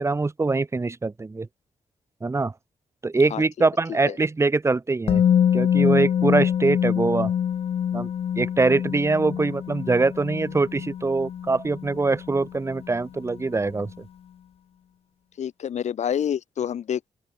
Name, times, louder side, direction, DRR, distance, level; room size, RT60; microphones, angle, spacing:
voice 1, 0.0-1.5 2.2-2.5 3.0-5.2 5.5-7.3 7.9-8.1 8.4-13.9, right 3 dB, 25° right, 1.9 m, -23 dB
voice 2, 3.3-3.7 4.1-4.2 15.4-17.1, left 9 dB, 70° left, 1.0 m, -28 dB
Musical instrument, 5.1-13.0 13.3-13.4, left 9 dB, 55° left, 0.4 m, -25 dB
open air
wide cardioid pair, 145°, 12 cm